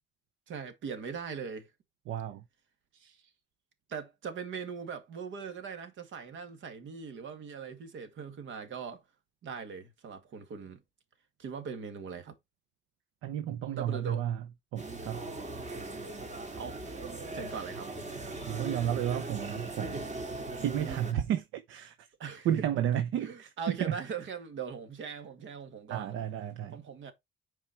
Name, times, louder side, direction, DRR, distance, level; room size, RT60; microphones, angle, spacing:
voice 1, 0.5-1.7 3.9-9.0 9.4-10.8 11.4-12.3 13.8-14.2 16.6-16.8 17.3-17.9 18.4-18.5 22.2-22.7 23.2-26.2 26.7-27.1, right 6 dB, 75° right, 2.1 m, -40 dB
voice 2, 2.1-2.4 2.9-3.3 13.2-14.4 14.7-15.2 18.5-20.1 20.6-22.1 22.4-23.9 25.9-26.8, right 10 dB, 90° right, 0.8 m, -32 dB
sound 1, 14.8-21.1, right 2 dB, 35° right, 2.4 m, -39 dB
7.5 x 4.8 x 4.5 m
cardioid pair, 90°, 20 cm